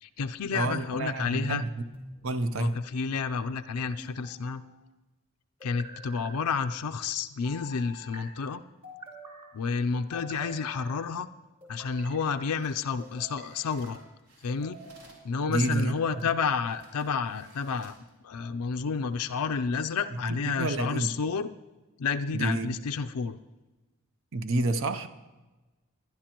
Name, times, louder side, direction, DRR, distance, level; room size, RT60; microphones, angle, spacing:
voice 1, 0.0-1.6 2.6-4.6 5.6-8.6 9.5-11.3 11.7-14.0 14.4-14.8 15.2-17.9 18.2-21.5 22.0-23.4, left 5 dB, 90° left, 8 dB, 0.5 m, -30 dB
voice 2, 0.5-1.8 2.2-2.8 15.5-16.2 20.2-21.1 22.3-22.7 24.3-25.1, right 2 dB, 60° right, 10 dB, 0.6 m, -29 dB
sound 1, 1.9-2.6 4.0-4.7 5.6-6.4 7.4-8.2 8.8-9.5 10.1-11.0 11.6-12.2 13.0-13.9 14.5-15.0 15.8-16.6, equal, 25° right, 3.2 m, -47 dB
sound 2, 12.5-15.3 16.2-16.3 16.6-18.1 18.6-18.9, right 2 dB, 85° right, 3.2 m, -58 dB
21.0 x 10.5 x 3.0 m, 1.1 s
head